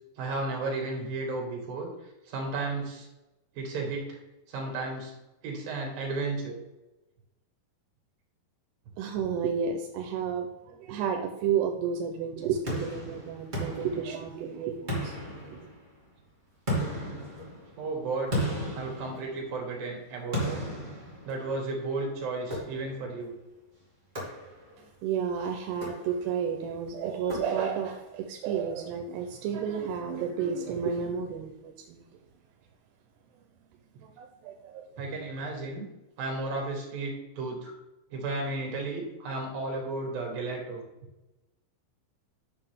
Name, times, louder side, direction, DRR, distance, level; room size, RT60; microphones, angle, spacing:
voice 1, 0.2-1.9 2.3-3.1 3.5-4.2 4.5-5.1 5.4-6.6 17.8-18.3 18.7-20.6 21.2-23.3 35.0-35.9 36.2-37.7 38.1-40.8, right 3 dB, 60° right, 1 dB, 3.6 m, -33 dB
voice 2, 9.0-15.7 24.8-32.0 34.0-34.9, right 7 dB, 85° right, 5 dB, 2.8 m, -32 dB
sound 1, 12.7-14.5 14.9-16.0 16.7-19.7 20.3-21.7 22.5-23.1 24.1-24.9 25.7-26.5 27.3-28.0, equal, 15° right, 1.9 m, -35 dB
9.0 x 6.9 x 3.5 m, 1.0 s
omnidirectional pair, 4.8 m